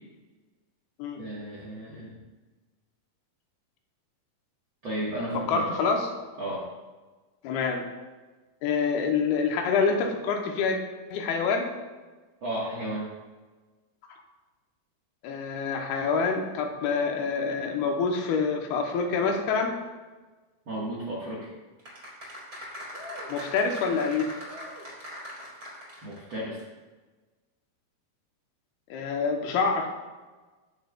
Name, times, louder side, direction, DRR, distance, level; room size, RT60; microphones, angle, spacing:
voice 1, 1.2-2.2 4.8-5.6 6.4-6.6 12.4-13.1 20.6-21.5 26.0-26.6, right 1 dB, 50° right, -5 dB, 1.5 m, -33 dB
voice 2, 5.5-6.1 7.4-7.9 8.6-10.8 11.1-11.7 14.1-14.2 15.2-19.8 23.3-24.4 28.9-29.9, left 5 dB, 85° left, 3 dB, 2.9 m, -26 dB
sound 1, 21.9-26.3 26.6-26.7, equal, 30° right, 3.5 m, -40 dB
17.5 x 6.9 x 2.3 m, 1.3 s
omnidirectional pair, 4.4 m